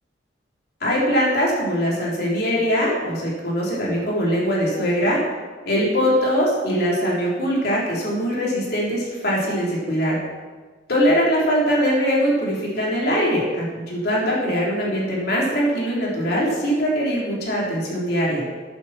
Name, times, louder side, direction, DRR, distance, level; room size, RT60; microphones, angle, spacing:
voice 1, 0.8-5.2 5.7-10.2 10.9-18.4, equal, 60° left, -4 dB, 3.8 m, -22 dB
14.0 x 9.0 x 4.5 m, 1.4 s
head